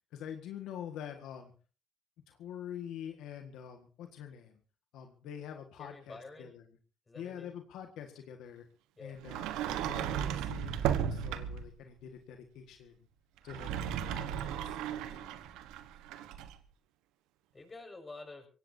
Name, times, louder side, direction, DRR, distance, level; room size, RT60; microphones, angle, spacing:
voice 1, 0.1-1.5 2.3-4.5 4.9-6.6 7.1-8.6 9.0-12.9 13.4-14.8, left 9 dB, 80° left, 5 dB, 1.7 m, -46 dB
voice 2, 5.8-6.5 7.1-7.5 9.0-9.2 15.1-15.5 17.5-18.5, left 3 dB, 25° left, 5 dB, 6.7 m, -49 dB
Sliding door, 9.2-11.7 13.4-16.5, right 9 dB, 90° right, 1.2 m, -35 dB
24.0 x 17.5 x 2.8 m, 0.36 s
supercardioid pair, 70°, 0 cm